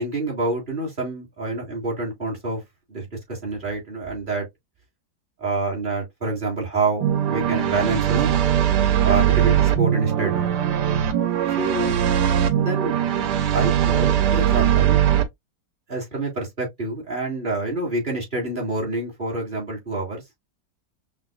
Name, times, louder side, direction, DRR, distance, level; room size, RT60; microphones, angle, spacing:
voice 1, 0.0-2.6 2.9-4.5 5.4-8.3 9.0-10.5 11.6-12.0 12.6-13.0 13.5-15.1 15.9-20.2, right 2 dB, 30° right, 2.1 m, -27 dB
sound 1, 7.0-15.2, right 10 dB, 90° right, 1.3 m, -20 dB
5.8 x 2.5 x 2.4 m
omnidirectional pair, 1.8 m